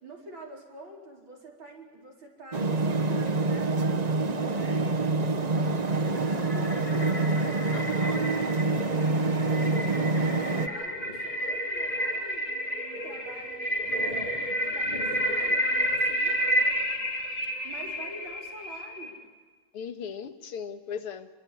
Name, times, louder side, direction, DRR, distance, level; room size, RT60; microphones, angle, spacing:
voice 1, 0.0-8.8 9.3-16.4 17.6-19.2, right 1 dB, 60° right, -2 dB, 5.3 m, -46 dB
sound 1, 2.5-10.7, right 3 dB, 85° right, 0.3 m, -26 dB
sound 2, 5.8-19.2, equal, 25° left, 2.7 m, -31 dB
voice 2, 7.7-8.2 19.7-21.3, left 7 dB, 90° left, 8 dB, 2.4 m, -38 dB
27.5 x 22.5 x 8.4 m, 1.4 s
omnidirectional pair, 2.4 m